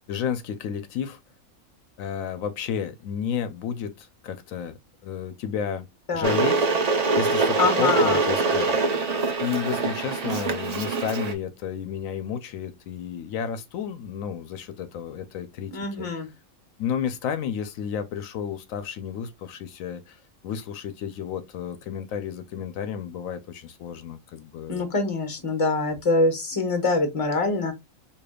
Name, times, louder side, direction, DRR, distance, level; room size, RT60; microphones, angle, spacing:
voice 1, 0.1-1.2 2.0-4.8 5.0-5.9 6.1-6.7 7.2-8.8 9.4-15.7 16.0-16.1 16.8-24.9, left 8 dB, 85° left, 1.0 m, -31 dB
Water / Boiling, 6.2-11.3, right 4 dB, 40° right, 0.6 m, -24 dB
voice 2, 7.6-8.2 15.7-16.3 24.7-27.7, left 3 dB, 30° left, 0.9 m, -24 dB
4.9 x 2.6 x 2.3 m
omnidirectional pair, 1.4 m